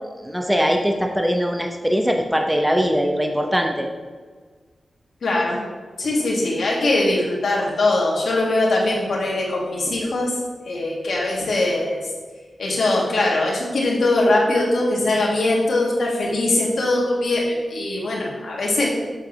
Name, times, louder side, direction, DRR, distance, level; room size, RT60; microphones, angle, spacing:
voice 1, 0.2-3.9, equal, 5° right, 3 dB, 0.7 m, -21 dB
voice 2, 5.2-5.6 6.0-10.4 10.7-12.0 12.6-18.9, left 2 dB, 80° left, -3 dB, 1.9 m, -21 dB
7.2 x 6.6 x 3.1 m, 1.5 s
cardioid pair, 75°, 0 cm